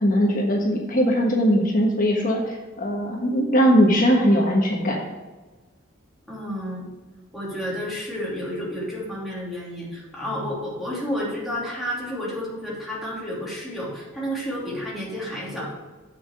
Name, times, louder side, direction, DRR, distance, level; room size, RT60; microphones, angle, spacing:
voice 1, 0.0-5.0, equal, 40° left, 0 dB, 1.4 m, -20 dB
voice 2, 6.3-6.9 7.3-15.7, equal, ahead, -7 dB, 2.8 m, -31 dB
7.8 x 5.9 x 6.5 m, 1.2 s
head